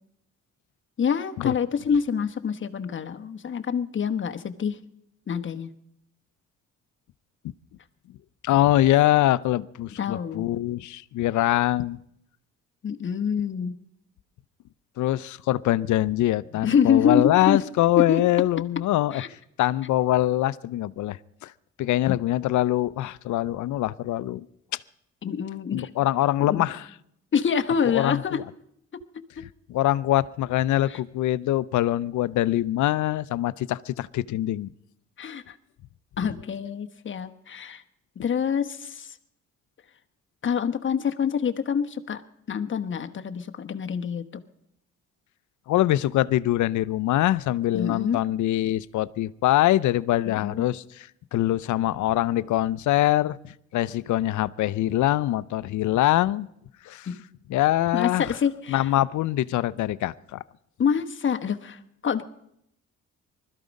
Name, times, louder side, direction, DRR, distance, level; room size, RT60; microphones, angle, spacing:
voice 1, 1.0-4.8 5.3-5.7 10.0-10.4 12.8-13.7 16.5-17.6 18.1-18.2 19.1-19.3 25.2-25.9 26.4-26.6 27.3-28.4 30.9-31.0 35.2-35.6 36.2-37.8 38.2-39.1 40.4-42.2 42.5-44.2 47.7-48.2 50.3-50.7 57.1-57.2 57.9-58.9 60.8-62.2, left 7 dB, 40° left, 1.1 m, -26 dB
voice 2, 8.4-12.0 15.0-19.2 19.6-21.5 21.8-24.5 25.7-26.9 27.9-28.4 29.7-34.7 45.7-53.4 53.7-56.5 56.9-57.1 57.5-58.3 58.7-60.4, left 14 dB, 75° left, 0.6 m, -23 dB
20.5 x 13.0 x 5.3 m
cardioid pair, 90°, 30 cm